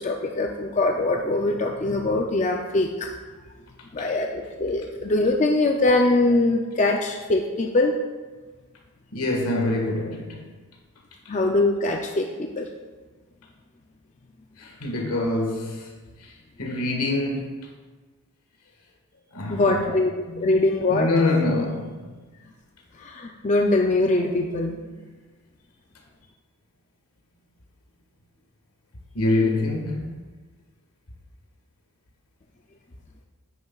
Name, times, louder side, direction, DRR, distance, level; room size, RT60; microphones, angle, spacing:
voice 1, 0.0-3.1 3.9-8.0 11.3-12.7 19.5-20.1 20.4-21.1 23.0-24.8, left 2 dB, 30° left, 0.4 m, -22 dB
voice 2, 9.1-10.4 14.6-15.9 16.2-16.3 16.6-17.5 19.3-19.8 20.3-20.5 20.9-22.2 24.7-24.8 29.1-30.1, left 2 dB, 80° left, 1.6 m, -25 dB
9.7 x 9.4 x 2.4 m
head